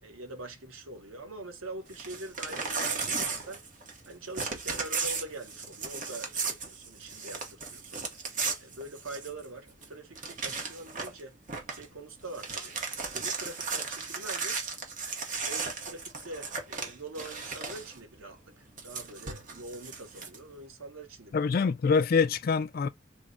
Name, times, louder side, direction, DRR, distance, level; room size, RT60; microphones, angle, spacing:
voice 1, 0.0-3.6 4.0-8.0 8.6-11.4 11.7-14.6 15.4-21.4, right 2 dB, 80° right, 1.0 m, -44 dB
Crumpling crinkling / Tearing, 1.9-4.1 4.3-9.4 9.8-9.9 10.1-11.2 11.5-11.8 12.2-18.0 18.8-20.4, right 4 dB, 40° right, 0.8 m, -35 dB
voice 2, 21.3-22.9, left 5 dB, 45° left, 0.3 m, -25 dB
3.5 x 2.1 x 3.8 m
head